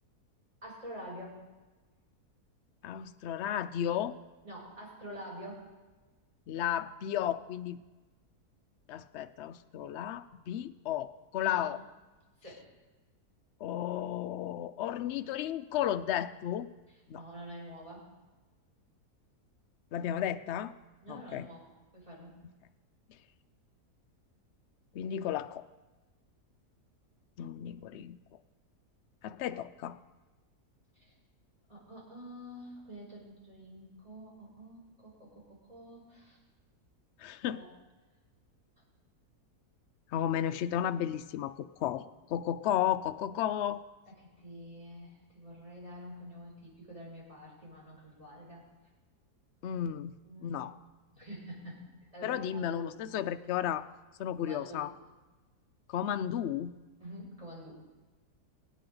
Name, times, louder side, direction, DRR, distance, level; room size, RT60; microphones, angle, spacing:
voice 1, 0.6-1.5 4.4-5.7 11.4-11.6 12.4-12.6 17.1-18.0 21.0-22.3 30.9-31.1 31.7-36.4 37.5-37.7 44.1-48.7 49.7-49.8 50.2-50.5 51.1-52.9 54.4-54.9 57.0-57.8, equal, 20° right, -5 dB, 5.0 m, -47 dB
voice 2, 2.8-4.2 6.5-7.8 8.9-11.8 13.6-16.7 17.1-17.2 19.9-20.7 21.1-21.5 24.9-25.7 27.4-28.2 29.2-30.0 37.2-37.6 40.1-43.8 49.6-50.2 50.4-50.7 52.2-53.9 54.2-54.9 55.9-56.8, left 10 dB, 75° left, 11 dB, 0.6 m, -33 dB
22.5 x 9.4 x 3.9 m, 1.2 s
omnidirectional pair, 1.7 m